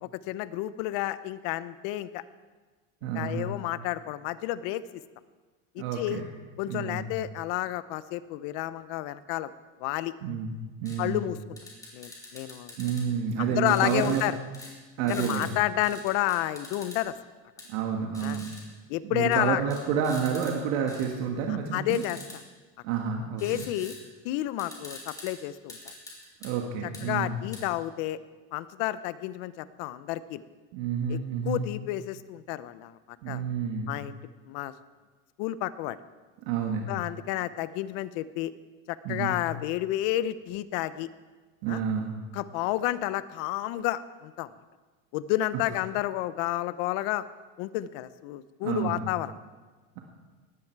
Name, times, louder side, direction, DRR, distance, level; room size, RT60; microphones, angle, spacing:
voice 1, 0.0-2.2 3.1-5.0 5.7-6.2 6.6-9.5 9.8-10.1 11.0-11.4 11.9-12.9 13.4-14.4 15.0-17.1 18.2-18.4 18.9-19.6 21.7-22.4 23.4-23.9 24.2-25.8 27.0-28.2 28.5-30.4 31.1-31.2 31.4-33.4 33.8-34.2 34.5-34.7 35.4-36.0 36.9-38.5 38.9-41.1 41.7-41.8 42.3-44.5 45.1-47.2 47.6-49.3, left 14 dB, 60° left, 15 dB, 0.8 m, -30 dB
voice 2, 3.0-3.5 5.8-6.3 6.7-7.1 10.2-10.5 10.8-11.2 12.8-14.2 15.0-15.6 17.7-18.5 19.0-22.0 22.8-23.6 26.4-27.4 30.7-31.6 33.2-33.9 36.4-36.9 39.0-39.4 41.6-42.2 48.6-49.1, right 7 dB, 70° right, 1 dB, 1.9 m, -29 dB
sound 1, 10.9-11.0 11.6-13.0 13.7-14.3 14.5-14.7 15.1-15.5 15.8-17.0 17.6-17.7 18.1-18.6 19.3-19.4 19.7-20.5 20.9-21.1 21.9-22.4 23.4-24.0 24.3-24.4 24.6-25.3 25.7-26.5 26.9-27.0 27.5-27.6, left 2 dB, 10° left, 3.1 m, -44 dB
19.0 x 15.0 x 4.7 m, 1.3 s
cardioid pair, 175°, 37 cm